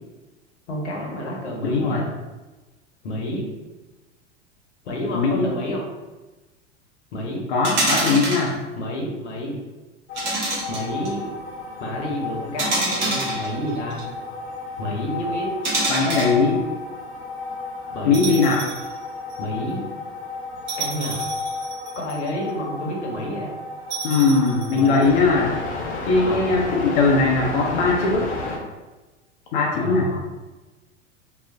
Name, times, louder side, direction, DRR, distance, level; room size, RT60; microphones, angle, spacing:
voice 1, 0.7-2.1 3.0-3.5 4.8-5.8 7.1-7.5 8.8-9.6 10.7-11.3 11.8-14.0 14.8-15.5 17.9-18.4 19.4-19.9 20.8-21.2 22.0-23.5 24.7-25.1 26.1-26.6 29.7-30.2, left 1 dB, 65° left, -1 dB, 0.9 m, -29 dB
voice 2, 1.6-2.0 5.1-5.5 7.5-8.5 15.9-16.6 18.0-18.6 24.0-25.5 26.1-28.3 29.5-30.1, left 4 dB, 45° left, -1 dB, 0.4 m, -20 dB
sound 1, 7.6-8.5 10.2-11.1 12.6-14.0 15.6-16.4 18.1-18.9 19.3-19.4 20.7-22.3 23.9-25.0, right 2 dB, 30° right, 0.9 m, -26 dB
sound 2, 10.1-28.6, left 3 dB, 25° left, 0.7 m, -32 dB
2.5 x 2.0 x 3.2 m, 1.2 s
figure-of-eight pair, 90°, 37 cm